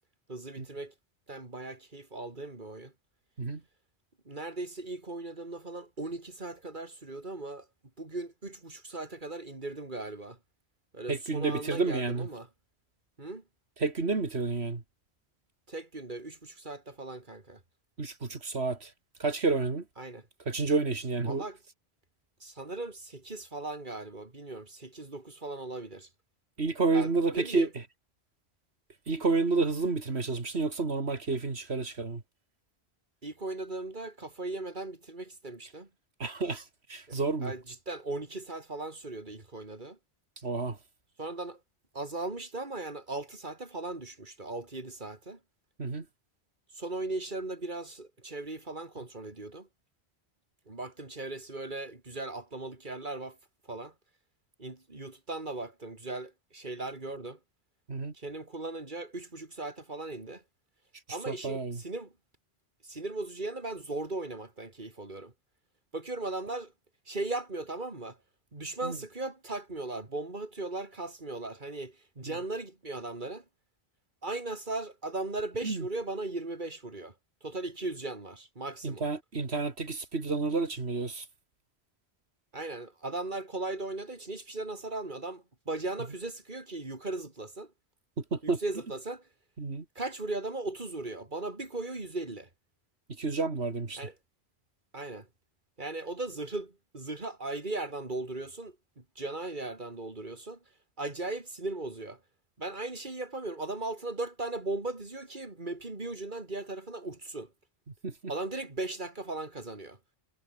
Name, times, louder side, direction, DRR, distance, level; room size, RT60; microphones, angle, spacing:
voice 1, 0.3-0.9 1.3-2.9 4.3-7.7 8.0-10.4 10.9-12.5 13.2-13.4 15.7-17.6 20.0-20.3 21.3-21.6 22.4-26.1 26.9-27.7 33.2-35.9 37.1-40.0 41.2-41.6 41.9-45.4 46.7-49.7 50.7-53.4 53.6-53.9 54.6-57.4 58.1-60.4 61.1-62.1 62.8-65.3 65.9-66.7 67.1-68.2 68.5-73.5 74.2-77.1 77.4-79.1 82.5-87.7 88.4-89.3 90.0-92.5 94.0-94.1 94.9-95.3 95.8-100.6 101.0-102.2 102.6-107.5 108.3-110.0, right 2 dB, 50° right, 3.5 m, -38 dB
voice 2, 11.1-12.3 13.8-14.8 18.0-18.9 19.2-19.8 20.5-21.4 26.6-27.7 29.1-32.2 36.2-36.6 36.9-37.5 40.4-40.8 45.8-46.0 57.9-58.1 61.3-61.8 68.8-69.0 75.6-75.9 78.8-81.2 88.3-88.6 89.6-89.8 93.2-94.0 108.0-108.1, right 3 dB, 85° right, 2.8 m, -30 dB
omnidirectional pair, 1.1 m